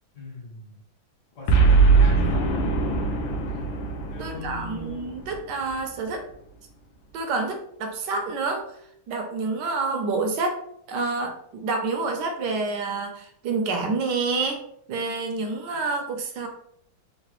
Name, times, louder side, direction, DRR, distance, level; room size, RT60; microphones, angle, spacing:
voice 1, 0.1-0.8 1.4-2.6 4.1-5.1, left 1 dB, 65° left, -4 dB, 1.5 m, -38 dB
Boom, 1.5-5.9, right 4 dB, 80° left, 1.3 m, -21 dB
voice 2, 4.2-6.2 7.1-8.8 9.1-10.6 10.9-14.6 14.9-16.5, right 3 dB, 75° right, 4 dB, 1.0 m, -28 dB
3.8 x 2.1 x 2.9 m, 0.70 s
omnidirectional pair, 2.2 m